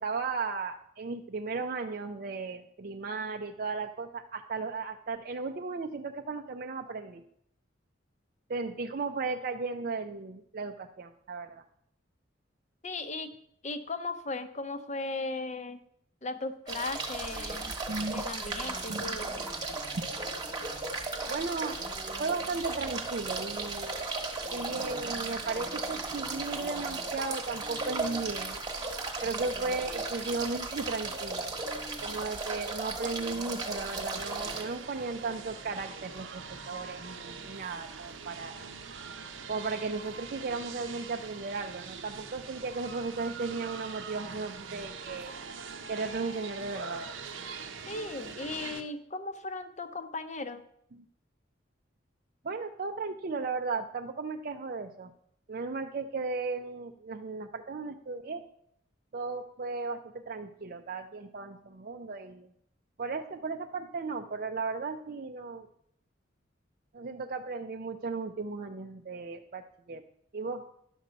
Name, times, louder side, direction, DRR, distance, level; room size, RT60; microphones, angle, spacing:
voice 1, 0.0-7.2 8.5-11.6 17.9-18.2 18.9-19.1 21.3-21.8 22.2-24.0 24.5-28.6 29.2-31.5 32.0-38.7 39.5-45.3 45.9-47.0 50.9-51.0 52.4-55.1 55.5-58.4 59.1-62.5 63.0-65.7 66.9-70.0 70.3-70.6, right 4 dB, 45° right, 5 dB, 0.5 m, -35 dB
voice 2, 12.8-13.3 13.6-15.8 16.2-17.8 18.1-19.5 47.9-50.6, left 3 dB, 35° left, 9 dB, 0.7 m, -37 dB
sound 1, 16.7-34.6, right 3 dB, 20° right, 1.2 m, -36 dB
sound 2, 34.2-48.8, right 5 dB, 75° right, 0.8 m, -43 dB
11.0 x 6.7 x 5.2 m, 0.72 s
head